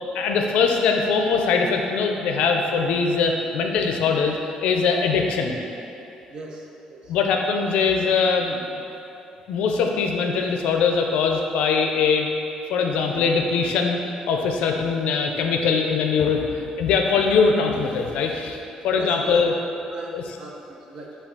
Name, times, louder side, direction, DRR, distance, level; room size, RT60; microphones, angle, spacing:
voice 1, 0.2-4.4 4.6-5.6 7.1-8.6 9.5-12.3 12.7-14.0 14.3-16.4 16.8-18.6 18.8-19.5 20.1-20.2, left 5 dB, 80° left, 3 dB, 0.4 m, -21 dB
voice 2, 6.3-7.1 18.9-19.5 19.9-21.2, right 2 dB, 45° right, -1 dB, 0.6 m, -39 dB
5.8 x 2.3 x 3.8 m, 2.8 s
cardioid pair, 160°, 2 cm